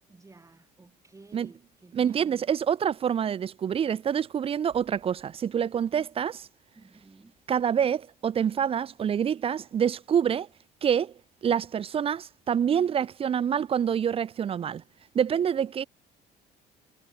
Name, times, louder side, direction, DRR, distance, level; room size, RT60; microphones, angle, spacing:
voice 1, 0.1-2.4 6.8-7.4, right 3 dB, 20° right, 7.0 m, -53 dB
voice 2, 1.9-6.5 7.5-10.5 10.8-11.1 11.4-14.8 15.1-15.9, right 8 dB, 35° right, 0.5 m, -26 dB
cardioid pair, 110°, 17 cm